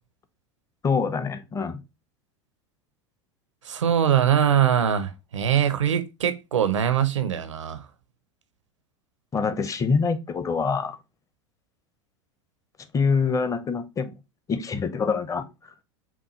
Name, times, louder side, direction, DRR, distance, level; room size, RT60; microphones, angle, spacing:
voice 1, 0.8-1.8 9.3-11.0 12.9-14.1 14.5-15.4, left 5 dB, 20° left, 0.6 m, -25 dB
voice 2, 3.6-7.9, right 9 dB, 80° right, 0.6 m, -22 dB
5.7 x 2.3 x 2.9 m
hypercardioid pair, 85°, 15 cm